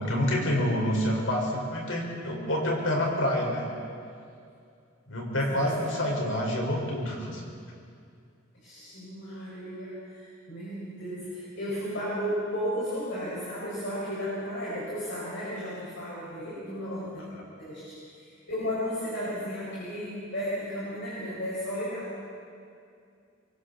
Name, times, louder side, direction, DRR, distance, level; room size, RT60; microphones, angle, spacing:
voice 1, 0.0-3.7 5.1-7.4 17.3-17.4, left 1 dB, 85° left, -1 dB, 5.2 m, -27 dB
voice 2, 8.5-17.2 17.6-17.8 18.2-22.2, equal, 60° left, -9 dB, 6.0 m, -34 dB
25.5 x 23.5 x 4.3 m, 2.4 s
head